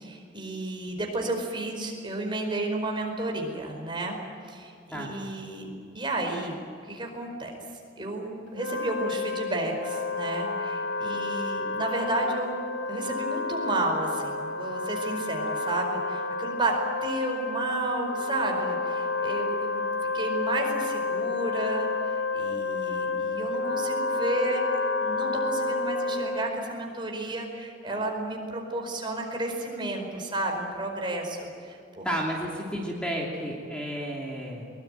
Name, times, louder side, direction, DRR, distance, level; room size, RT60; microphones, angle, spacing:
voice 1, 0.0-4.2 4.5-5.7 5.9-6.6 6.8-7.5 8.0-12.6 12.9-19.8 20.1-24.6 25.0-32.1, right 2 dB, 25° right, 2 dB, 4.8 m, -32 dB
Wind instrument woodwind instrument, 8.5-26.6, left 3 dB, 70° left, 1.3 m, -30 dB
voice 2, 32.0-34.6, equal, 5° left, -2 dB, 3.0 m, -32 dB
23.0 x 22.5 x 9.1 m, 2.5 s
head